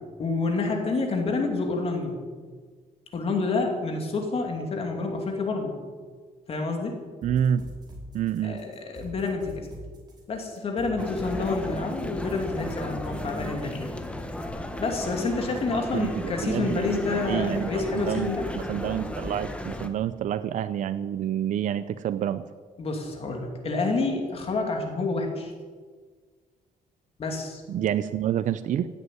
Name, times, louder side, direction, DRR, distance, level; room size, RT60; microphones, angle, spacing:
voice 1, 0.2-2.2 3.1-5.7 6.5-7.0 8.4-9.7 10.3-13.9 14.8-18.5 22.8-25.5 27.2-27.6, left 3 dB, 45° left, 2 dB, 2.7 m, -28 dB
sound 1, 7.2-14.5, equal, 30° right, 5.1 m, -43 dB
voice 2, 7.2-7.7 8.1-8.6 15.9-22.4 27.7-28.9, right 10 dB, 60° right, 12 dB, 0.6 m, -28 dB
sound 2, 11.0-19.9, left 1 dB, 10° left, 1.2 m, -34 dB
16.5 x 8.2 x 9.4 m, 1.5 s
cardioid pair, 150°, 14 cm